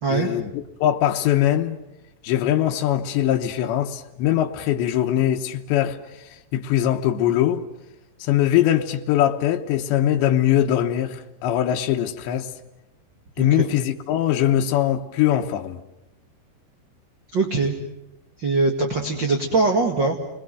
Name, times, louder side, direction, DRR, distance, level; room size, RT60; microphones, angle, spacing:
voice 1, 0.1-1.8 2.2-7.6 8.2-12.5 13.4-15.8, left 11 dB, 80° left, 3.3 m, -22 dB
voice 2, 17.3-17.7 18.4-20.2, right 3 dB, 40° right, 1.6 m, -22 dB
30.0 x 21.5 x 7.7 m
omnidirectional pair, 5.0 m